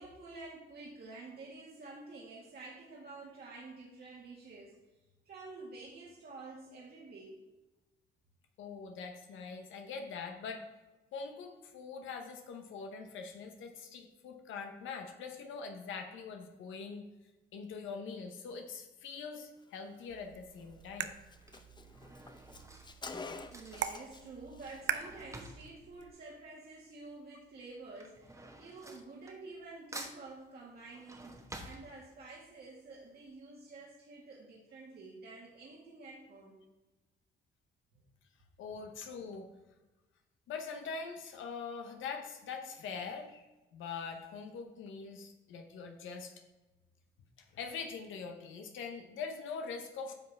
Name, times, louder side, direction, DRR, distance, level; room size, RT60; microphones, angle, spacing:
voice 1, 0.0-4.8 5.2-7.3 23.5-36.6, right 3 dB, 50° right, -4 dB, 1.7 m, -49 dB
voice 2, 8.6-10.6 11.1-17.0 17.5-21.1 38.6-39.5 40.5-43.4 43.7-46.3 47.5-50.1, left 5 dB, 80° left, 4 dB, 1.0 m, -43 dB
Drawer open or close / Cutlery silverware, 19.9-20.3 21.1-27.0 27.3-29.7 29.9-32.4 32.9-33.0 33.2-33.3, right 1 dB, 15° right, 1.2 m, -51 dB
sound 1, 20.1-26.1, right 10 dB, 70° right, 0.6 m, -43 dB
Car, 20.6-20.7 21.0-21.1 21.3-24.3 24.5-24.8, left 3 dB, 20° left, 0.6 m, -47 dB
9.5 x 5.7 x 3.4 m, 1.1 s
cardioid pair, 90°, 20 cm